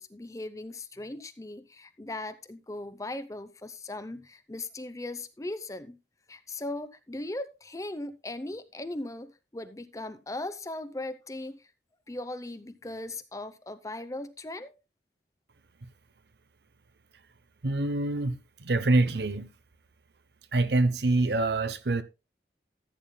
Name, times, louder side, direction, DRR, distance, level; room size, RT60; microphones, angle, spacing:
voice 1, 0.0-6.0 6.3-11.7 12.1-14.7, left 2 dB, 20° left, 0.6 m, -38 dB
voice 2, 17.6-19.5 20.5-22.0, right 2 dB, 70° right, 0.8 m, -26 dB
14.5 x 9.0 x 2.2 m
head